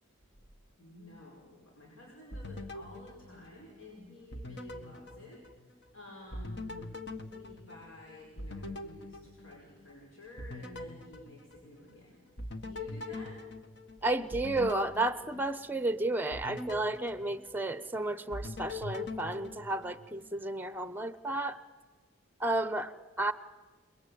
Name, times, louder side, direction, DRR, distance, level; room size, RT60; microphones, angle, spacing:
voice 1, 0.8-5.4 5.7-12.2 12.6-13.5, left 1 dB, 70° left, -2 dB, 5.5 m, -52 dB
sound 1, 2.3-3.9 4.3-5.9 6.3-10.0 10.4-12.0 12.4-15.8 16.3-17.9 18.3-20.3, left 2 dB, 55° left, 1.7 m, -43 dB
voice 2, 14.0-21.6 22.4-22.9 23.2-23.3, right 2 dB, 10° right, 13 dB, 0.9 m, -32 dB
29.5 x 21.0 x 8.6 m, 1.3 s
head